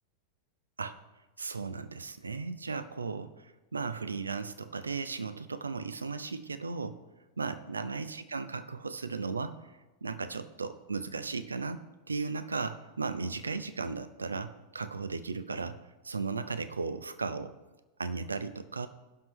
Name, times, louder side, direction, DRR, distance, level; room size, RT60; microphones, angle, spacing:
voice 1, 1.4-7.0 7.4-9.6 10.0-15.8 16.0-17.5 18.0-18.9, right 4 dB, 75° right, 12 dB, 0.6 m, -36 dB
17.5 x 6.0 x 3.1 m, 1.1 s
figure-of-eight pair, 90°, 0 cm